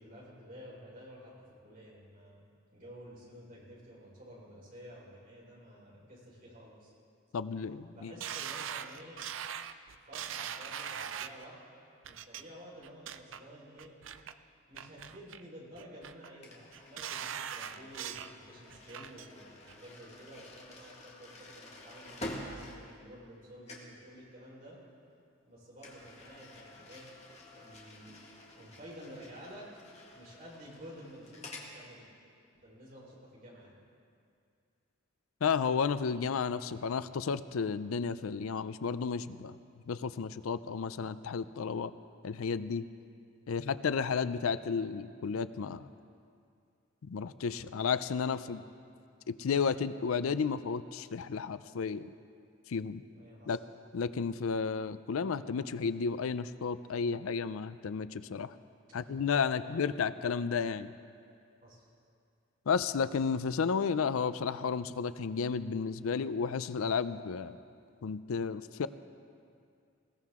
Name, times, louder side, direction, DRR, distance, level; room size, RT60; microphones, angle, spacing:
voice 1, 0.0-2.5 2.7-6.9 7.9-9.3 10.1-11.6 12.0-13.9 14.7-24.8 25.4-27.1 27.4-28.2 28.5-29.7 30.1-32.1 32.6-33.8 43.6-43.8 48.3-48.6 53.1-53.6 58.9-60.2 61.6-61.9, equal, 40° right, -5 dB, 4.5 m, -51 dB
voice 2, 7.3-8.1 35.4-39.6 39.9-41.9 42.2-42.9 43.5-45.9 47.0-48.6 49.3-52.1 52.7-53.0 53.5-53.6 53.9-58.5 58.9-60.9 62.7-67.6 68.0-68.9, left 5 dB, 85° left, 14 dB, 0.5 m, -32 dB
sound 1, 8.2-11.4 12.0-12.4 12.8-13.4 13.8-14.3 14.7-15.4 15.8-16.3 16.7-18.3 18.7-19.3 19.7-19.8, right 9 dB, 65° right, 0.5 m, -41 dB
sound 2, 16.4-23.4 23.7-24.0 25.8-31.7, left 1 dB, 30° left, 1.7 m, -49 dB
20.0 x 16.0 x 3.7 m, 2.3 s
head